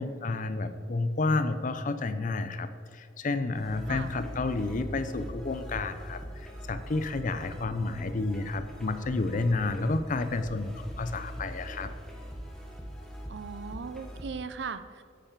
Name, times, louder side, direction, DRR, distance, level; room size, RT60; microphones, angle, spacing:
voice 1, 0.0-11.9, left 3 dB, 45° left, 11 dB, 0.5 m, -30 dB
sound 1, 3.5-14.3, equal, 5° left, 1.3 m, -42 dB
voice 2, 13.3-15.0, right 5 dB, 70° right, 11 dB, 0.5 m, -38 dB
8.2 x 5.6 x 7.3 m, 2.1 s
head